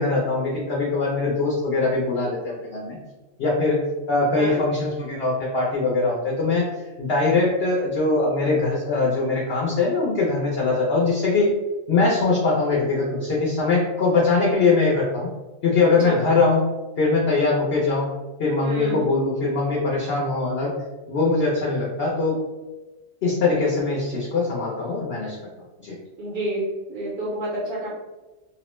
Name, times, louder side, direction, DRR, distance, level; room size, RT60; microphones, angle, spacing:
voice 1, 0.0-3.0 3.4-3.8 4.1-6.7 7.0-11.5 11.9-15.3 15.6-16.6 17.0-18.1 18.4-20.7 21.1-22.4 23.2-25.4 25.8-26.0, left 3 dB, 60° left, -4 dB, 0.7 m, -22 dB
voice 2, 18.6-19.0 26.2-27.9, right 1 dB, 80° right, -6 dB, 1.3 m, -28 dB
2.9 x 2.0 x 3.0 m, 1.1 s
omnidirectional pair, 1.5 m